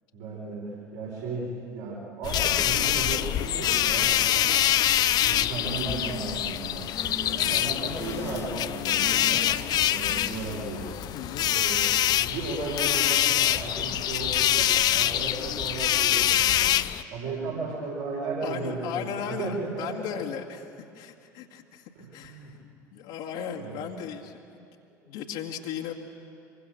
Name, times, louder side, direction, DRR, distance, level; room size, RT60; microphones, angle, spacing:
voice 1, 0.1-4.6 5.2-9.5 9.8-10.9 11.4-16.7 17.1-19.9 20.1-20.2 21.9-22.5 23.6-23.8, right 3 dB, 65° right, -4 dB, 6.0 m, -35 dB
sound 1, 2.2-17.0, left 12 dB, 45° left, 0.6 m, -25 dB
smartphone vibrating alarm silent, 5.9-6.6 6.9-7.4 8.0-8.5 9.0-9.5 10.1-10.5, left 1 dB, 30° left, 2.0 m, -40 dB
voice 2, 11.1-11.5 18.4-20.6 20.9-22.5 22.9-24.7 25.1-25.9, left 8 dB, 60° left, 0 dB, 2.0 m, -36 dB
25.0 x 23.5 x 6.8 m, 2.5 s
figure-of-eight pair, 65°, 10 cm